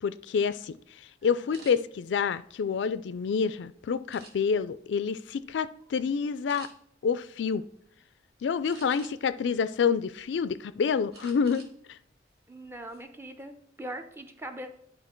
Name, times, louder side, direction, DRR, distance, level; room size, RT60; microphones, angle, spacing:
voice 1, 0.0-0.8 1.2-6.7 7.0-7.6 8.4-11.7, left 6 dB, 90° left, 0.4 m, -28 dB
voice 2, 1.2-1.8 8.8-9.1 12.5-14.7, right 1 dB, 15° right, 0.6 m, -42 dB
sound 1, 1.5-1.7 2.4-3.4 4.1-4.7 5.2-5.4 5.8-6.0 6.5-6.7 8.6-9.3 9.9-10.6 11.1-11.7 12.1-12.3 12.7-13.0, right 4 dB, 60° right, 1.4 m, -51 dB
10.5 x 3.9 x 4.4 m
head